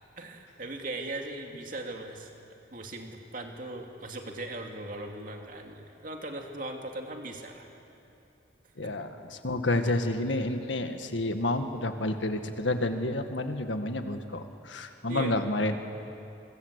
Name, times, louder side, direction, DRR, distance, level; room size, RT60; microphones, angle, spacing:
voice 1, 0.2-2.3 2.7-7.7 8.8-8.9 15.1-15.3, right 2 dB, 45° right, 2 dB, 2.6 m, -39 dB
voice 2, 8.8-15.7, left 2 dB, 85° left, 7 dB, 1.8 m, -30 dB
25.5 x 25.0 x 8.2 m, 2.8 s
head